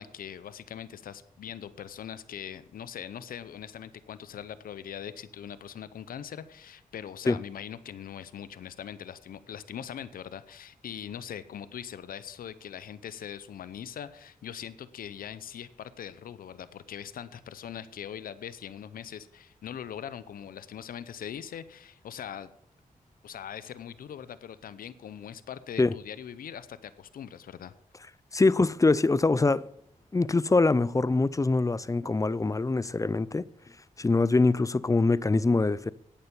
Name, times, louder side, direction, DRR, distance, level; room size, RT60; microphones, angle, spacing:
voice 1, 0.0-22.5 23.2-27.7, left 9 dB, 85° left, 0.7 m, -41 dB
voice 2, 28.3-29.7 30.1-33.4 34.0-35.9, left 3 dB, 20° left, 0.5 m, -24 dB
10.5 x 8.8 x 7.0 m
cardioid pair, 50°, 15 cm